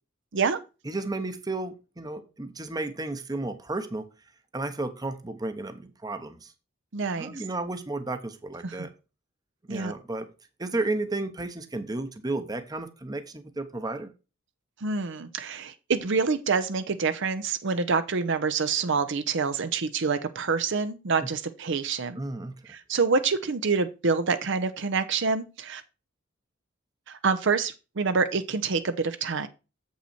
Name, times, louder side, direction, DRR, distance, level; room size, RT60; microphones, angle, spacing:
voice 1, 0.8-4.1 4.5-6.5 7.1-8.9 9.7-10.3 10.6-14.1 22.2-22.5, right 2 dB, 20° right, 9 dB, 0.8 m, -33 dB
voice 2, 6.9-7.4 8.6-8.9 9.7-9.9 14.8-22.2 22.7-25.8 27.1-29.5, right 4 dB, 60° right, 11 dB, 0.7 m, -27 dB
7.7 x 5.6 x 4.3 m, 0.30 s
head